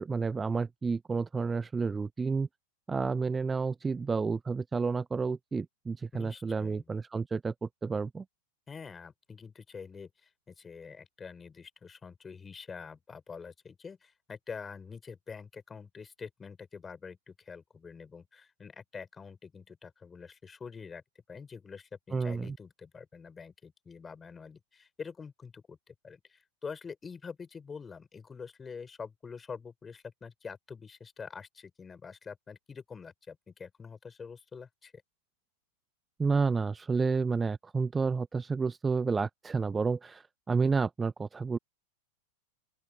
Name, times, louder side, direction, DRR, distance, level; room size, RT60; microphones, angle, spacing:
voice 1, 0.0-2.5 2.9-8.2 22.1-22.6 36.2-41.6, right 4 dB, 15° right, 0.9 m, -30 dB
voice 2, 6.1-6.8 8.7-21.0 21.3-34.9, left 5 dB, 15° left, 5.1 m, -46 dB
open air
figure-of-eight pair, 90°, 0 cm